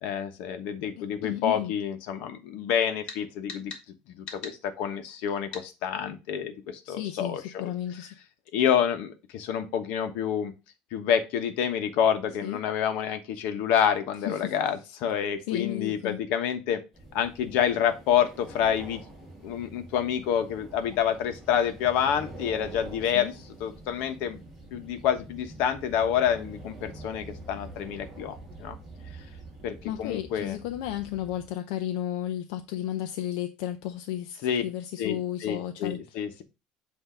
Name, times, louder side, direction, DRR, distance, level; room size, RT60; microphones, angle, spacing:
voice 1, 0.0-3.7 4.1-7.7 8.5-10.5 10.9-16.8 17.1-19.0 19.4-23.3 23.6-24.4 24.7-28.8 29.6-30.6 34.4-34.6 35.0-36.4, left 8 dB, 60° left, 1.1 m, -28 dB
voice 2, 1.0-1.7 6.8-8.1 12.4-12.6 14.2-14.5 15.5-16.2 23.1-23.3 29.8-34.4 34.6-36.2, left 12 dB, 80° left, 0.6 m, -33 dB
sound 1, 3.1-3.2 3.5-3.8 4.3-4.6 5.5-5.7, left 5 dB, 40° left, 1.5 m, -39 dB
sound 2, 16.9-31.5, right 2 dB, 5° right, 1.8 m, -46 dB
8.0 x 2.8 x 5.0 m
cardioid pair, 165°, 3 cm